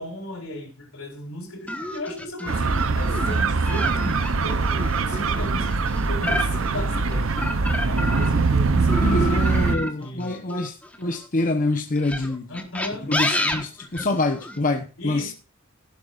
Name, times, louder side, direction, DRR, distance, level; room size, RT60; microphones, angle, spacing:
voice 1, 0.0-4.7 5.0-7.4 7.8-10.4 12.5-13.1 15.0-15.3, left 1 dB, 80° left, 4.4 m, -36 dB
sound 1, 1.7-8.5 8.9-11.3 12.0-14.6, left 1 dB, 5° left, 1.3 m, -29 dB
sound 2, 2.5-9.8, right 4 dB, 70° right, 0.7 m, -23 dB
voice 2, 8.7-12.5 13.1-15.3, left 2 dB, 40° left, 1.0 m, -26 dB
15.5 x 11.5 x 2.5 m
head